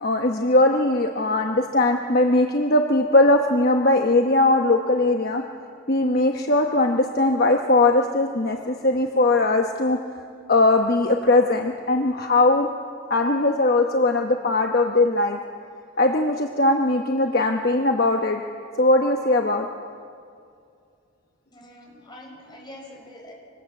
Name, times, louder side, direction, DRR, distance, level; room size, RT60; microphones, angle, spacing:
voice 1, 0.0-5.4 5.9-10.0 10.5-12.7 13.1-15.4 16.0-18.4 18.8-19.7, left 2 dB, 50° left, 3 dB, 1.0 m, -20 dB
voice 2, 21.5-23.3, left 1 dB, 20° left, -1 dB, 5.2 m, -44 dB
24.5 x 19.5 x 8.4 m, 2.4 s
head